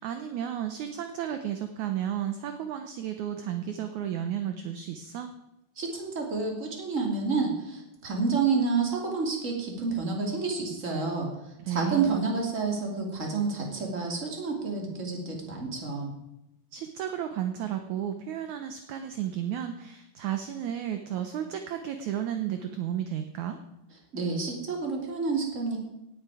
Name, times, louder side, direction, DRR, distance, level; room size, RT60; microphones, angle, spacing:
voice 1, 0.0-5.3 11.6-12.1 16.7-23.6, right 10 dB, 70° right, 7 dB, 2.0 m, -33 dB
voice 2, 5.8-11.3 11.7-16.1 24.1-25.8, right 4 dB, 25° right, 0 dB, 2.8 m, -29 dB
17.5 x 11.0 x 4.9 m, 0.89 s
omnidirectional pair, 4.0 m